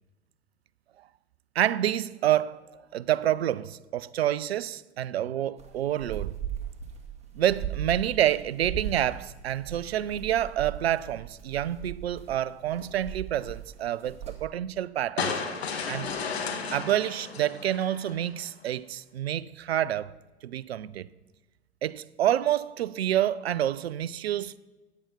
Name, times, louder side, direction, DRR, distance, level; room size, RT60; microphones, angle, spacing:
voice 1, 1.5-6.4 7.3-15.4 15.9-16.2 16.7-20.1 20.4-21.1 21.8-24.6, right 12 dB, 65° right, 0.6 m, -28 dB
sound 1, 5.6-14.4, right 9 dB, 20° right, 2.4 m, -38 dB
sound 2, 15.2-18.4, left 5 dB, 65° left, 1.9 m, -33 dB
15.0 x 9.4 x 5.3 m
figure-of-eight pair, 90°, 34 cm